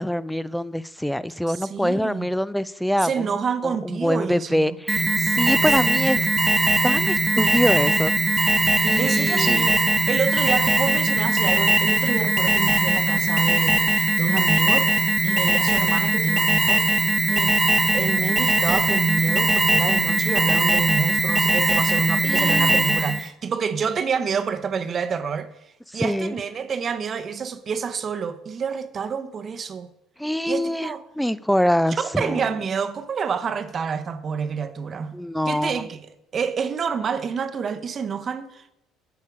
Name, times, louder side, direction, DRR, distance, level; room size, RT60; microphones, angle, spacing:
voice 1, 0.0-3.3 3.6-6.3 6.8-8.5 8.8-9.7 22.2-22.8 25.9-26.3 30.2-32.5 35.1-35.8, equal, ahead, 0.4 m, -25 dB
voice 2, 1.5-2.3 3.0-4.8 6.1-6.2 9.0-14.9 15.2-17.6 17.9-25.5 25.9-29.9 30.5-31.0 32.0-35.1 35.4-36.0 36.3-38.7, right 6 dB, 45° right, 0.8 m, -28 dB
Alarm, 4.9-23.3, right 2 dB, 15° right, 1.0 m, -20 dB
8.3 x 8.3 x 5.0 m
supercardioid pair, 75°, 0 cm